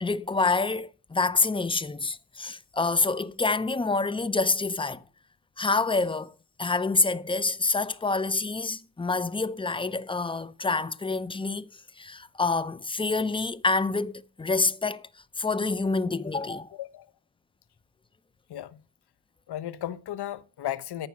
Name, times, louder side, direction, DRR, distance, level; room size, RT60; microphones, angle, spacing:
voice 1, 0.0-5.0 5.6-11.7 12.0-15.1 15.4-16.7, left 3 dB, 10° left, 0.5 m, -27 dB
voice 2, 19.5-21.1, left 12 dB, 50° left, 1.1 m, -34 dB
14.0 x 5.5 x 7.3 m
cardioid pair, 100°, 49 cm